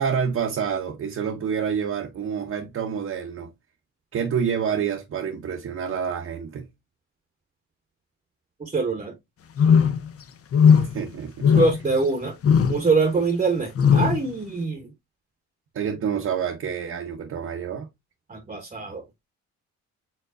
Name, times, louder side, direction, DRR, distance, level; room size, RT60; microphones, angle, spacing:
voice 1, 0.0-3.5 4.1-6.7 10.7-11.6 15.7-17.9, right 7 dB, 50° right, 0.8 m, -28 dB
voice 2, 8.6-9.1 11.6-12.3 12.7-14.9 18.3-19.0, right 3 dB, 25° right, 0.9 m, -24 dB
sound 1, 9.6-10.1 10.5-11.0 11.4-11.9 12.4-12.8 13.8-14.2, left 7 dB, 50° left, 0.6 m, -17 dB
4.6 x 3.8 x 2.5 m
cardioid pair, 90°, 30 cm